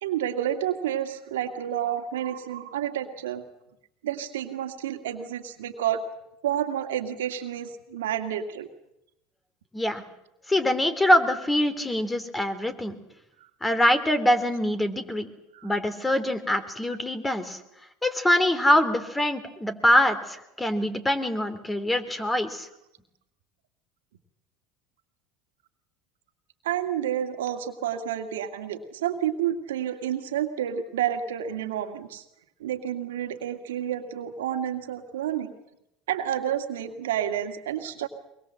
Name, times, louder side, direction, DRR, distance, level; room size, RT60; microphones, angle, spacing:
voice 1, 0.0-3.4 4.0-6.0 6.4-8.7 15.6-15.7 26.6-32.2 32.6-35.5 36.1-38.1, right 10 dB, 85° right, 5 dB, 2.2 m, -30 dB
voice 2, 10.5-13.0 13.6-15.3 15.6-17.6 18.0-22.7, left 1 dB, 15° left, 11 dB, 3.1 m, -24 dB
23.0 x 22.5 x 7.7 m, 0.84 s
hypercardioid pair, 85°, 0 cm